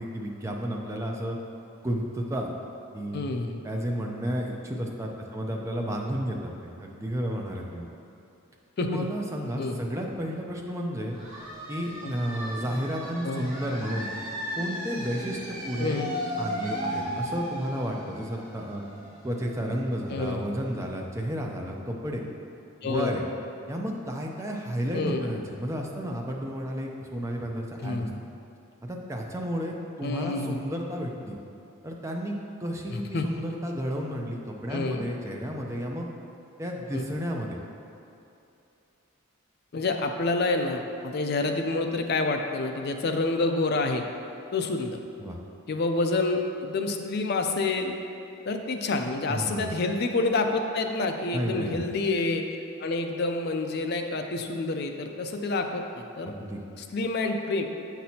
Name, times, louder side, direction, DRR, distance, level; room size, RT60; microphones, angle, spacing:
voice 1, 0.0-1.4 1.8-2.5 2.9-3.2 3.6-7.9 8.8-11.2 11.7-14.1 14.6-16.0 16.4-18.8 19.2-22.2 22.8-23.2 23.7-28.1 28.8-31.4 31.8-32.4 32.6-36.1 36.6-37.6 45.2-45.4 49.3-49.7 51.3-51.9 56.2-56.6, equal, 15° right, 0 dB, 0.5 m, -32 dB
voice 2, 3.1-3.7 8.8-9.1 9.6-9.8 12.0-12.1 13.2-13.5 15.8-16.2 20.1-20.5 22.8-23.2 24.9-25.3 27.8-28.2 30.0-30.6 32.9-33.3 34.7-35.1 36.9-37.0 39.7-44.1 44.5-45.0 45.7-48.0 48.4-52.4 52.8-56.3 56.8-57.6, left 3 dB, 45° left, 5 dB, 0.4 m, -28 dB
sound 1, 11.1-20.6, equal, 35° right, 1.1 m, -36 dB
7.4 x 5.9 x 2.8 m, 2.7 s
head